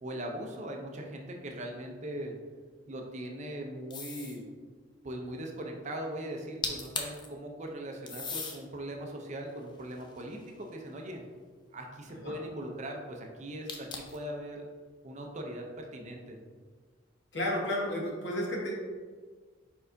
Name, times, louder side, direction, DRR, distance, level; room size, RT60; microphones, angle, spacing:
voice 1, 0.0-2.3 2.9-4.4 5.0-11.2 11.7-14.7 15.0-16.4, right 1 dB, 35° right, 2 dB, 0.5 m, -40 dB
sound 1, 3.9-4.4 6.4-6.5 6.6-7.3 8.1-8.6 9.3-10.7 13.7-14.2, left 4 dB, 20° left, 0.4 m, -38 dB
voice 2, 17.3-18.7, left 1 dB, 60° left, -2 dB, 1.0 m, -32 dB
4.6 x 4.5 x 2.6 m, 1.5 s
head